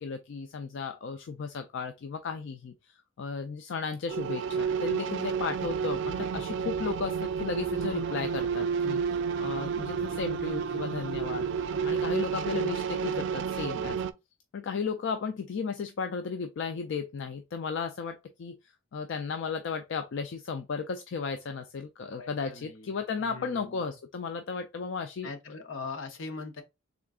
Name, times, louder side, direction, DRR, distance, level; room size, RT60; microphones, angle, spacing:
voice 1, 0.0-2.5 3.2-4.4 4.8-7.1 7.4-9.0 9.4-11.4 11.8-14.0 14.7-18.1 18.4-18.5 18.9-25.3, left 5 dB, 65° left, 0.4 m, -34 dB
sound 1, 4.1-14.1, right 6 dB, 65° right, 0.3 m, -31 dB
voice 2, 22.1-22.9 23.2-23.9 25.2-26.6, left 4 dB, 80° left, 0.8 m, -41 dB
3.7 x 2.4 x 3.5 m
head